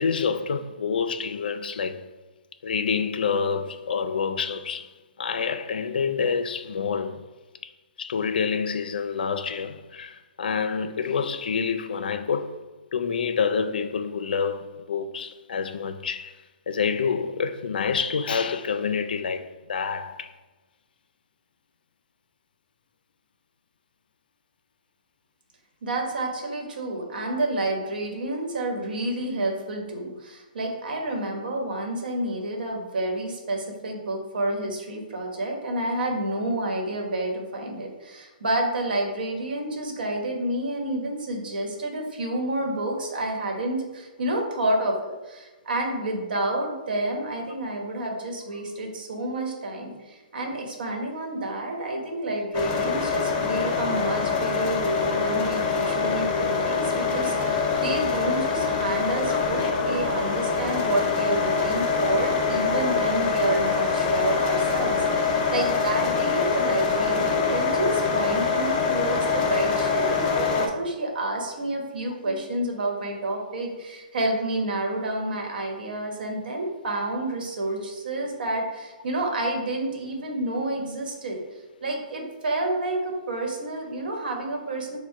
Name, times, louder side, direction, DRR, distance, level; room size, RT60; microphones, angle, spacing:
voice 1, 0.0-2.0 2.6-4.9 5.2-7.2 8.0-12.6 12.9-16.3 16.7-20.3 72.3-72.4, left 6 dB, 80° left, 0.4 m, -27 dB
voice 2, 25.8-81.4 81.8-85.0, right 1 dB, 80° right, 1.1 m, -29 dB
sound 1, 52.5-70.7, left 5 dB, 20° left, 0.4 m, -24 dB
4.6 x 2.1 x 4.6 m
hypercardioid pair, 165°, 5 cm